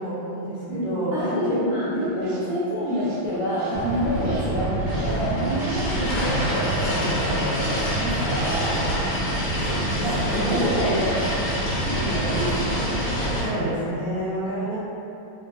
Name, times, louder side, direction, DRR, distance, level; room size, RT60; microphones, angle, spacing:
voice 1, 0.0-1.6 1.9-2.4 9.5-11.0 11.8-12.2 13.4-14.8, right 1 dB, 35° left, -16 dB, 0.9 m, -30 dB
voice 2, 0.7-8.7 10.0-11.1 11.8-12.5 13.4-13.7, equal, 55° right, -16 dB, 0.9 m, -27 dB
sound 1, 1.8-9.1, right 1 dB, 90° right, 0.8 m, -41 dB
sound 2, 3.7-13.4, right 1 dB, 65° left, 1.2 m, -26 dB
3.6 x 2.1 x 2.5 m, 2.9 s
omnidirectional pair, 2.3 m